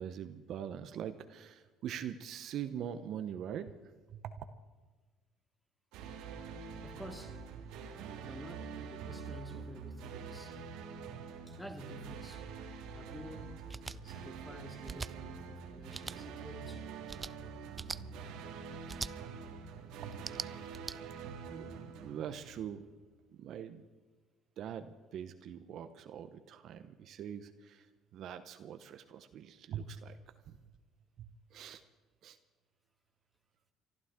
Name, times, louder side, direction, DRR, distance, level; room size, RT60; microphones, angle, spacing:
voice 1, 0.0-3.7 4.1-4.4 20.0-20.1 21.5-22.8 23.3-23.9 24.6-27.9 28.1-30.2 30.5-30.6 31.2-31.8 32.2-32.4, right 9 dB, 60° right, 0.9 m, -43 dB
sound 1, 5.9-23.0, right 5 dB, 80° right, 1.9 m, -46 dB
voice 2, 6.8-7.5 8.2-10.6 11.5-12.5 12.9-13.7 14.0-16.9, equal, 10° left, 2.3 m, -50 dB
sound 2, 13.7-14.0 14.8-15.1 15.9-16.2 17.1-17.3 17.8-18.0 18.9-19.1 20.1-21.0, right 4 dB, 25° right, 0.4 m, -41 dB
30.0 x 12.5 x 3.7 m
supercardioid pair, 95°, 0 cm